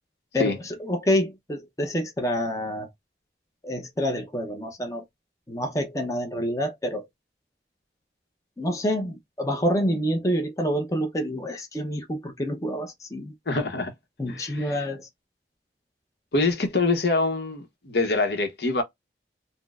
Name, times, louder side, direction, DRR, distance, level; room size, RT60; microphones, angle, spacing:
voice 1, 0.3-2.9 3.6-5.0 5.5-7.1 8.6-13.3 14.2-15.1, equal, 20° left, 0.6 m, -27 dB
voice 2, 13.5-13.9 14.3-14.8 16.3-18.8, left 3 dB, 70° left, 0.8 m, -25 dB
4.3 x 2.0 x 2.3 m
head